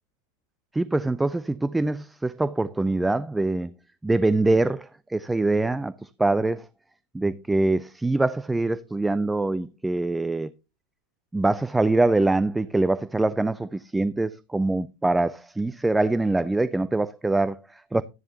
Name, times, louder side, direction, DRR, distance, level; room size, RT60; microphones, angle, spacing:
voice 1, 0.7-3.7 4.0-6.7 7.1-10.5 11.3-18.0, right 2 dB, 5° right, 0.4 m, -24 dB
12.5 x 10.5 x 2.8 m
figure-of-eight pair, 90°, 0 cm